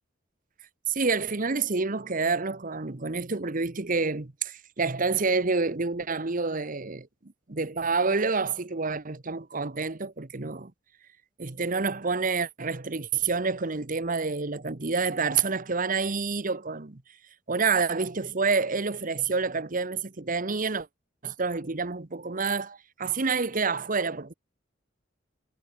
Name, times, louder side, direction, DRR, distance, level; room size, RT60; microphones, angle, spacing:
voice 1, 0.9-7.1 7.5-10.7 11.4-17.0 17.5-20.9 21.2-24.3, right 4 dB, 45° right, 1.2 m, -28 dB
head